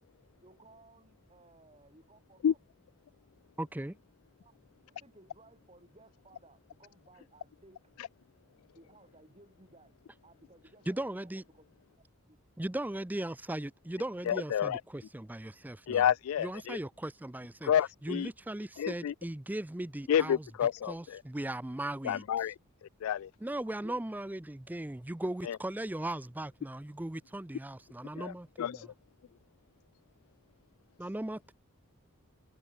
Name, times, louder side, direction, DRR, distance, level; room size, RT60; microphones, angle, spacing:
voice 1, 0.4-2.6 4.4-4.6 4.9-7.8 8.7-10.0 10.2-11.6 12.3-12.4 23.7-24.0, right 2 dB, 25° right, 4.6 m, -59 dB
voice 2, 3.6-4.0 10.9-11.4 12.6-16.1 16.4-17.7 18.0-20.5 20.8-22.5 23.4-28.9 31.0-31.5, right 1 dB, 10° right, 0.4 m, -38 dB
voice 3, 14.3-14.8 15.9-16.8 17.6-18.3 18.8-19.1 20.1-21.2 22.0-22.5 23.0-23.3 25.5-25.6 28.2-28.3 28.6-28.9, left 9 dB, 75° left, 0.3 m, -29 dB
head